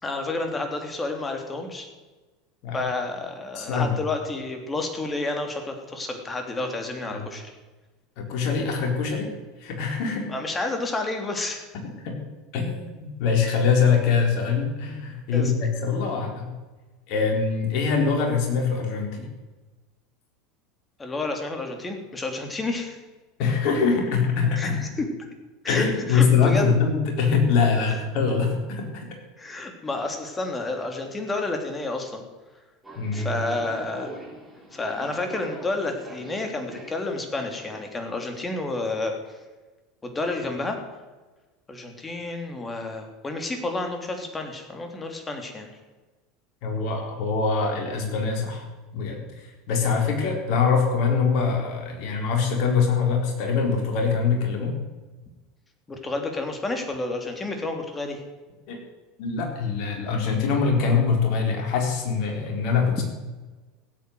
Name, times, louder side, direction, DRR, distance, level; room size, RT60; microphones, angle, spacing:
voice 1, 0.0-1.9 2.7-7.5 10.3-11.6 15.3-15.5 21.0-23.0 24.6-25.1 25.6-26.7 29.4-32.2 33.1-34.1 34.7-39.2 40.0-40.8 41.7-45.7 55.9-58.2 62.9-63.0, left 2 dB, 20° left, 4 dB, 3.2 m, -30 dB
voice 2, 3.6-3.9 7.1-7.2 8.2-9.3 9.6-10.3 12.0-12.1 12.5-16.5 17.1-19.3 23.4-24.8 25.7-29.0 33.0-33.4 46.6-48.6 48.9-49.2 49.7-54.7 58.7-58.8 59.2-63.0, left 5 dB, 55° left, 2 dB, 4.0 m, -23 dB
Subway metro underground, 32.8-37.9, right 2 dB, 10° right, 5.9 m, -43 dB
16.0 x 8.5 x 8.1 m, 1.2 s
figure-of-eight pair, 80°, 0 cm